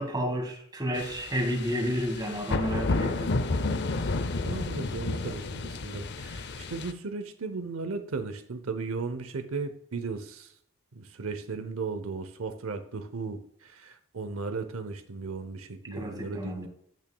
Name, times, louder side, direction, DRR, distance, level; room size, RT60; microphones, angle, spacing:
voice 1, 0.0-3.3 15.9-16.7, equal, 20° right, 2 dB, 2.0 m, -31 dB
sound 1, 1.0-6.9, left 3 dB, 55° left, 0.6 m, -31 dB
voice 2, 4.4-10.5 10.9-16.7, right 4 dB, 85° right, 9 dB, 0.7 m, -36 dB
14.5 x 6.0 x 2.3 m, 0.68 s
head